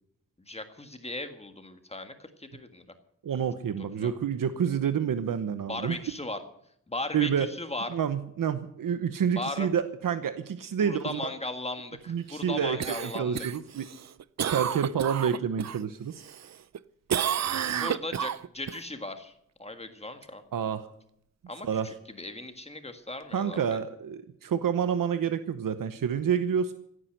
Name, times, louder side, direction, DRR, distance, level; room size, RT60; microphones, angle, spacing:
voice 1, 0.5-2.8 4.0-4.1 5.7-6.4 6.9-7.9 9.3-9.7 10.8-13.5 17.8-19.3 19.6-20.4 21.5-23.6, left 2 dB, 20° left, 7 dB, 1.7 m, -37 dB
voice 2, 3.2-6.0 7.1-7.5 7.9-11.3 12.1-13.9 14.5-16.2 20.5-20.9 21.6-21.9 23.3-26.7, right 8 dB, 90° right, 11 dB, 1.0 m, -28 dB
Cough, 12.8-15.8 16.2-16.8 17.1-18.8 23.2-23.3, right 9 dB, 55° right, 0.6 m, -31 dB
16.5 x 9.8 x 7.8 m, 0.71 s
wide cardioid pair, 125°, 32 cm